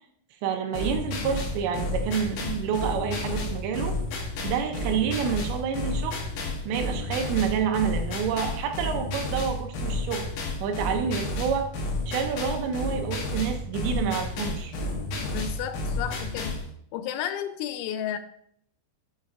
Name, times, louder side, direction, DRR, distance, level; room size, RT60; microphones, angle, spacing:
voice 1, 0.4-4.0 4.4-6.2 6.7-10.3 10.6-11.7 12.1-14.7, right 7 dB, 80° right, 5 dB, 2.7 m, -28 dB
sound 1, 0.7-16.7, left 2 dB, 70° left, 2.4 m, -31 dB
voice 2, 15.2-16.6 16.9-18.2, left 10 dB, 90° left, 10 dB, 3.0 m, -32 dB
8.6 x 5.3 x 2.4 m, 0.67 s
omnidirectional pair, 5.3 m